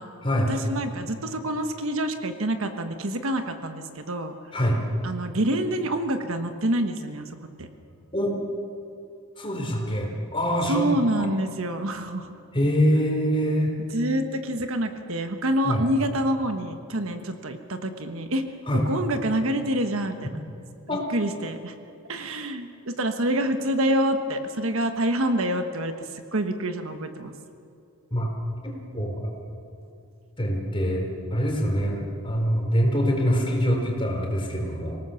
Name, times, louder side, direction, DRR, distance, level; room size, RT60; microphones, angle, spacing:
voice 1, 0.5-4.3 5.0-7.3 7.6-7.7 10.7-12.3 13.9-18.4 18.7-20.4 21.1-21.7 22.1-25.9 26.3-27.3, right 1 dB, 65° right, 7 dB, 1.3 m, -27 dB
voice 2, 9.4-11.3 12.5-13.7 15.6-15.8 18.7-18.8 20.9-21.1 28.1-28.3 28.6-29.3 30.4-35.0, equal, 25° left, 0 dB, 4.3 m, -24 dB
25.5 x 18.0 x 7.1 m, 2.5 s
head